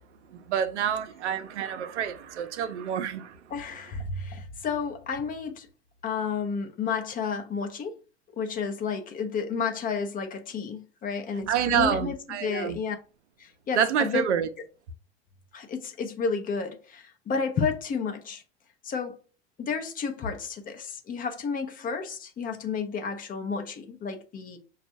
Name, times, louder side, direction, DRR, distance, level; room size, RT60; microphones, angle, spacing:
voice 1, 0.3-3.4 11.5-12.8 13.7-14.5, right 8 dB, 80° right, 0.6 m, -27 dB
voice 2, 3.5-5.7 6.0-8.0 8.4-13.0 13.4-14.2 15.5-18.4 18.8-19.2 19.6-24.6, left 5 dB, 25° left, 0.6 m, -31 dB
5.9 x 2.4 x 2.6 m
hypercardioid pair, 100°, 34 cm